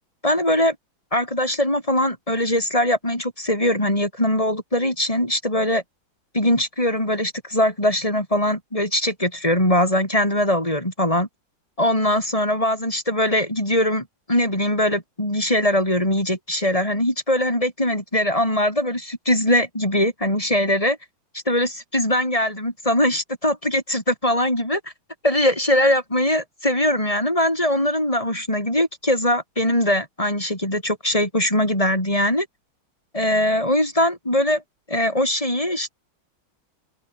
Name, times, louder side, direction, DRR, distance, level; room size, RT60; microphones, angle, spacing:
voice 1, 0.2-0.8 1.1-5.8 6.3-11.3 11.8-21.0 21.3-24.8 25.2-32.5 33.1-34.6 34.9-35.9, left 1 dB, 15° left, 7.9 m, -21 dB
open air
omnidirectional pair, 2.2 m